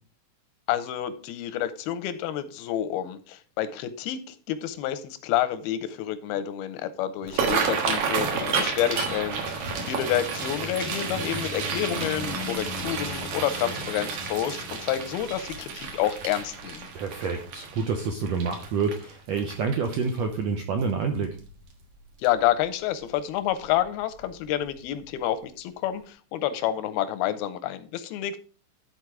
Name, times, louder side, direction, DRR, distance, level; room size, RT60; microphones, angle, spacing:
voice 1, 0.7-16.9 22.2-28.4, left 11 dB, 90° left, 12 dB, 2.7 m, -29 dB
sound 1, 7.2-20.3 20.8-21.1 21.4-21.8 22.3-22.4 23.6-23.8 24.2-24.3 24.8-24.9, right 5 dB, 65° right, 2.9 m, -31 dB
voice 2, 16.9-21.4, right 5 dB, 85° right, 4 dB, 1.5 m, -28 dB
11.5 x 4.5 x 4.7 m, 0.39 s
omnidirectional pair, 4.2 m